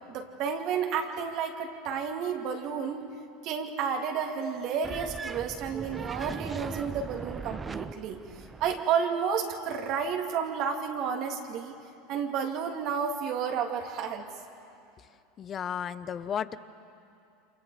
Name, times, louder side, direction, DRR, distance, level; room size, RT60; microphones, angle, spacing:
voice 1, 0.1-3.1 3.4-8.2 8.6-11.7 12.1-14.3, right 7 dB, 55° right, 3 dB, 2.7 m, -31 dB
sound 1, 4.8-8.9, right 4 dB, 20° right, 0.7 m, -39 dB
voice 2, 15.4-16.6, left 8 dB, 35° left, 14 dB, 0.9 m, -33 dB
29.5 x 27.0 x 5.0 m, 2.5 s
hypercardioid pair, 90°, 0 cm